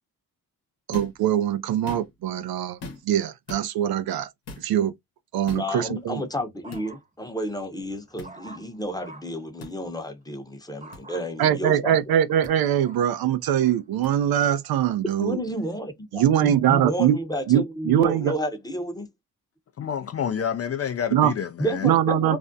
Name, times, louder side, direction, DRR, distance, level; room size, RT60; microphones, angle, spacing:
sound 1, 0.9-1.2 1.7-2.3 2.8-3.2 3.5-3.7 4.5-4.7 5.5-5.7 6.7-6.8 8.2-8.3 9.6-9.7 10.9-11.0 12.4-12.5 14.0-14.1, left 3 dB, 85° left, 0.9 m, -40 dB
voice 1, 0.9-2.8 3.0-4.3 4.6-4.9 5.3-6.2 11.4-15.4 16.1-17.2 17.5-18.3 21.1-21.3 21.8-22.4, right 10 dB, 65° right, 0.5 m, -22 dB
voice 2, 5.5-12.0 15.2-19.1 21.6-22.4, equal, 10° left, 0.8 m, -31 dB
sound 2, 5.9-7.3 7.8-9.4 10.8-11.2 11.9-13.8 14.5-14.8, right 2 dB, 20° right, 0.9 m, -48 dB
voice 3, 19.8-21.9, left 8 dB, 40° left, 0.4 m, -28 dB
2.5 x 2.0 x 2.5 m
supercardioid pair, 45°, 40 cm